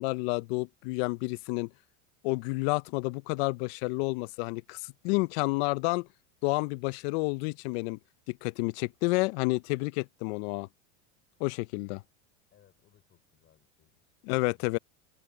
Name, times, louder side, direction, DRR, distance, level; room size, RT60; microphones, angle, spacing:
voice 1, 0.0-1.7 2.2-6.1 6.4-8.0 8.3-10.7 11.4-12.0 14.2-14.8, left 26 dB, 60° left, 0.6 m, -30 dB
voice 2, 12.5-14.8, left 11 dB, 30° left, 4.5 m, -65 dB
open air
supercardioid pair, 140°, 36 cm